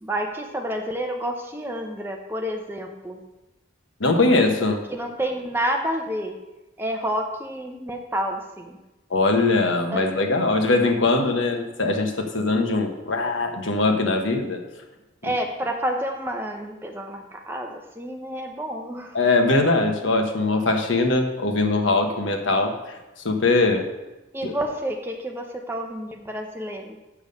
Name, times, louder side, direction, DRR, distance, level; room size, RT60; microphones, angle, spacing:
voice 1, 0.0-3.2 4.9-6.3 6.8-8.8 9.9-10.2 15.2-19.1 24.3-27.0, equal, 10° right, 3 dB, 0.8 m, -29 dB
voice 2, 4.0-4.8 9.1-14.6 19.1-22.9 23.2-23.8 24.4-24.5, left 2 dB, 85° left, 4 dB, 1.2 m, -21 dB
7.3 x 6.9 x 5.3 m, 1.0 s
head